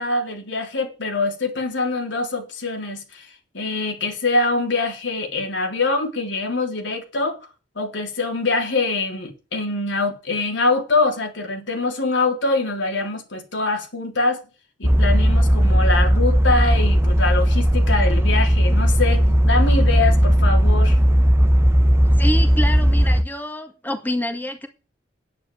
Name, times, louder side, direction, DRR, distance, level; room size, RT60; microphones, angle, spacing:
voice 1, 0.0-3.3 3.5-7.4 7.8-14.4 14.8-21.0, left 3 dB, 80° left, 3.5 m, -24 dB
sound 1, 14.8-23.2, equal, 15° right, 0.8 m, -16 dB
voice 2, 22.2-24.7, left 1 dB, 10° left, 1.8 m, -27 dB
10.0 x 9.3 x 7.1 m
head